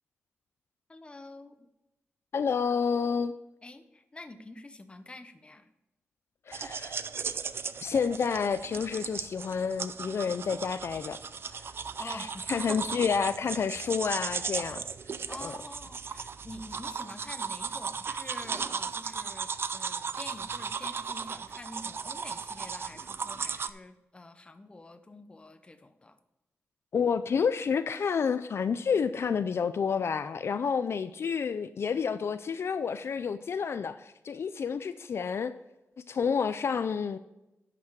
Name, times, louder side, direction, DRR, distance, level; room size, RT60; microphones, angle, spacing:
voice 1, 0.9-1.7 3.6-5.7 12.0-12.8 15.3-26.2, left 2 dB, 20° left, 0.7 m, -46 dB
voice 2, 2.3-3.3 6.5-6.9 7.8-11.2 11.5-11.7 12.0-14.8 15.4-15.5 26.9-35.5 36.1-37.2, left 6 dB, 60° left, 0.4 m, -29 dB
sound 1, 6.5-23.7, right 6 dB, 55° right, 0.4 m, -36 dB
11.0 x 6.0 x 4.7 m
wide cardioid pair, 145°, 5 cm